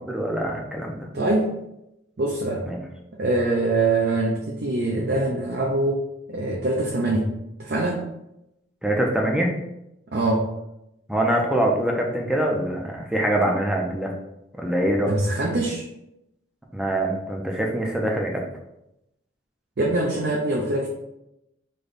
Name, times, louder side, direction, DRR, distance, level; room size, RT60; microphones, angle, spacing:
voice 1, 0.1-1.1 2.7-2.8 8.8-9.5 11.1-14.1 14.6-15.1 16.7-18.4, right 1 dB, 5° right, 0 dB, 0.5 m, -24 dB
voice 2, 1.1-1.5 2.2-2.6 3.2-7.3 7.6-8.0 10.1-10.5 15.1-15.8 19.8-20.9, right 2 dB, 60° right, -1 dB, 0.5 m, -23 dB
3.3 x 2.2 x 3.9 m, 0.86 s
head